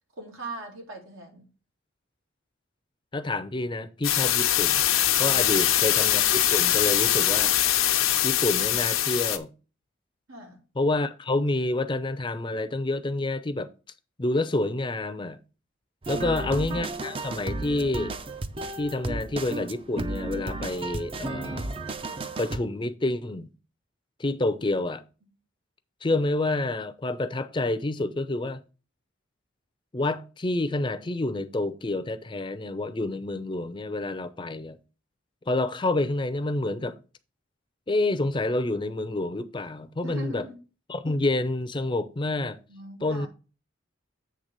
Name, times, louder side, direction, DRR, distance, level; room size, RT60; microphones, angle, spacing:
voice 1, 0.2-1.4 5.3-5.5 10.3-10.6 16.1-17.0 40.0-40.6 42.7-43.3, right 1 dB, 85° right, 2.5 m, -40 dB
voice 2, 3.1-4.8 5.2-7.5 8.2-9.5 10.8-13.7 14.2-15.4 16.1-18.1 18.8-21.7 22.4-23.5 24.2-25.0 26.0-28.6 29.9-34.8 35.5-37.0 37.9-40.4 40.9-42.6 43.0-43.3, left 2 dB, 25° left, 0.5 m, -28 dB
sound 1, 4.0-9.4, left 12 dB, 90° left, 0.7 m, -22 dB
sound 2, 16.0-22.6, right 2 dB, 25° right, 0.5 m, -33 dB
8.0 x 3.4 x 6.5 m
head